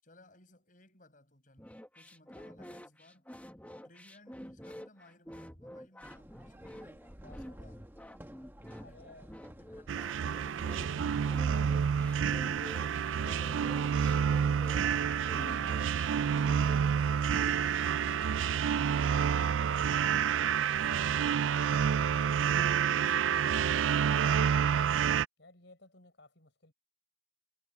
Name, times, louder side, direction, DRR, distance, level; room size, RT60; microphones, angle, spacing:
voice 1, 0.0-3.3 3.8-7.9 8.6-9.0 9.5-11.9 12.6-14.7 16.4-20.2 20.6-24.3, left 2 dB, 40° left, 7.5 m, -61 dB
sound 1, 1.6-17.5, equal, 10° left, 1.4 m, -48 dB
sound 2, 6.0-12.6, equal, 10° right, 1.2 m, -52 dB
voice 2, 8.8-9.3 15.5-16.3 25.4-26.7, left 2 dB, 65° left, 5.4 m, -57 dB
sound 3, 9.9-25.3, right 7 dB, 75° right, 0.4 m, -28 dB
head